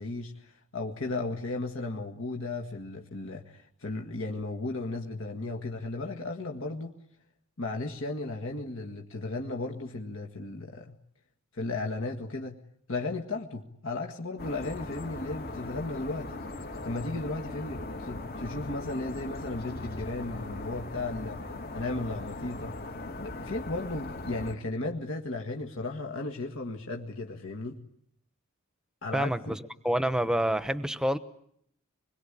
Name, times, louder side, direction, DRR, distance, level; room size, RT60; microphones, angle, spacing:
voice 1, 0.0-7.0 7.6-11.0 11.5-12.6 12.9-16.3 16.8-22.8 23.2-27.8 29.0-29.6, left 2 dB, 60° left, 1 dB, 1.9 m, -35 dB
sound 1, 14.4-24.5, left 2 dB, 45° left, 2.6 m, -39 dB
voice 2, 29.1-31.2, right 1 dB, 5° right, 12 dB, 1.0 m, -28 dB
25.5 x 22.0 x 10.0 m, 0.72 s
head